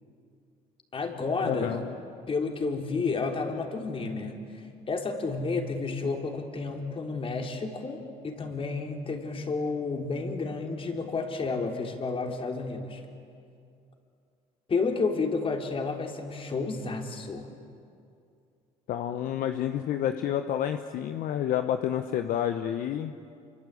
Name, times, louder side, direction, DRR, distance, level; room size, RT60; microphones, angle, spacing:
voice 1, 0.9-1.8 2.3-13.0 14.7-17.5, left 4 dB, 35° left, 3 dB, 3.9 m, -31 dB
voice 2, 1.5-1.9 18.9-23.1, left 10 dB, 65° left, 7 dB, 1.1 m, -29 dB
26.5 x 24.5 x 8.5 m, 2.4 s
supercardioid pair, 80°, 15 cm